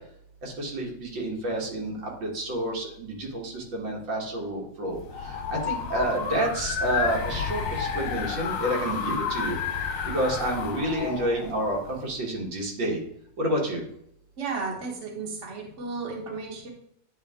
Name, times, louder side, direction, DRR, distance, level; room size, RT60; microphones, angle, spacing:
voice 1, 0.4-9.6 10.1-13.0 13.4-13.8, right 1 dB, 85° right, -2 dB, 2.4 m, -29 dB
sound 1, 4.9-12.1, left 6 dB, 55° left, 1.0 m, -31 dB
voice 2, 14.4-16.7, right 4 dB, 40° right, -1 dB, 1.6 m, -34 dB
9.7 x 4.1 x 3.6 m, 0.75 s
omnidirectional pair, 2.0 m